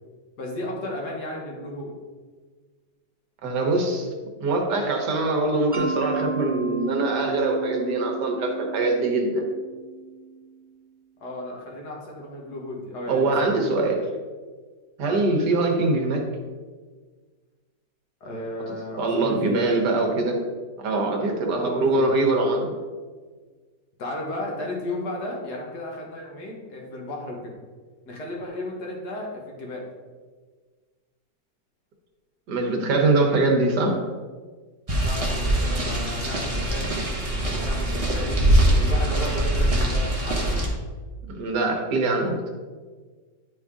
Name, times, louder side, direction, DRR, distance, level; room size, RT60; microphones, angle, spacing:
voice 1, 0.4-1.9 11.2-13.9 15.0-15.2 18.2-19.7 21.5-22.1 24.0-27.6 28.1-29.9 35.0-36.9 37.3-38.4 38.7-40.6, left 1 dB, 65° left, -1 dB, 2.0 m, -34 dB
voice 2, 3.4-4.1 4.4-9.4 13.1-14.0 15.0-16.3 19.0-20.4 20.8-22.7 32.5-34.0 41.3-42.5, right 2 dB, 70° right, 2 dB, 1.7 m, -23 dB
Mallet percussion, 5.7-10.5, right 4 dB, 10° left, 0.6 m, -33 dB
sound 1, 34.9-40.7, right 1 dB, 25° right, 1.1 m, -23 dB
9.8 x 3.9 x 3.6 m, 1.4 s
omnidirectional pair, 1.9 m